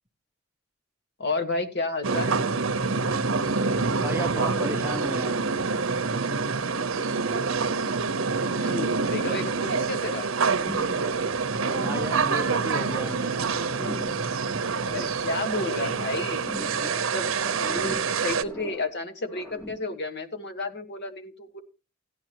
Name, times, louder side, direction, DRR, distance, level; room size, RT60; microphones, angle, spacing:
voice 1, 1.2-2.3 8.6-10.3 14.9-16.6 16.9-21.6, left 2 dB, 55° left, 8 dB, 1.5 m, -32 dB
sound 1, 2.0-18.4, right 4 dB, 85° right, 0.8 m, -26 dB
voice 2, 4.0-5.4 11.8-13.5, right 1 dB, 10° right, 6 dB, 0.9 m, -33 dB
sound 2, 10.6-11.3 11.5-13.2 13.5-15.2 15.5-17.1 17.4-19.0 19.3-19.9, left 1 dB, 10° left, 1.3 m, -40 dB
16.0 x 10.5 x 2.9 m, 0.31 s
head